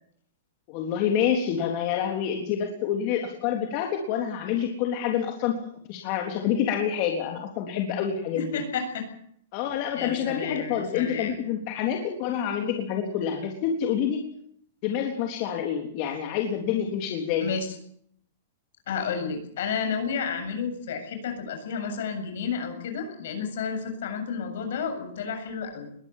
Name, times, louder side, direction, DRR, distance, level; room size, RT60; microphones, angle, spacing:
voice 1, 0.7-5.6 5.9-8.6 9.5-14.2 14.8-17.5, left 8 dB, 45° left, 2 dB, 3.5 m, -27 dB
voice 2, 8.3-9.0 10.0-11.3 17.4-17.7 18.9-25.9, left 6 dB, 70° left, 6 dB, 7.8 m, -31 dB
22.0 x 18.0 x 7.5 m, 0.66 s
hypercardioid pair, 145°, 0 cm